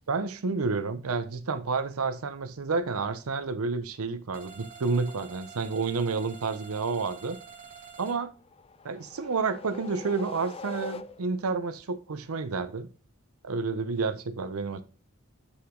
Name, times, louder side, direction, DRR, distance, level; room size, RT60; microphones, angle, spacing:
voice 1, 0.1-7.4 8.0-8.3 8.8-12.9 13.4-14.8, right 4 dB, 85° right, 0.7 m, -30 dB
sound 1, 4.3-8.2, right 6 dB, 40° right, 1.5 m, -47 dB
sound 2, 8.4-11.6, left 4 dB, 25° left, 0.4 m, -43 dB
8.1 x 5.7 x 3.7 m
head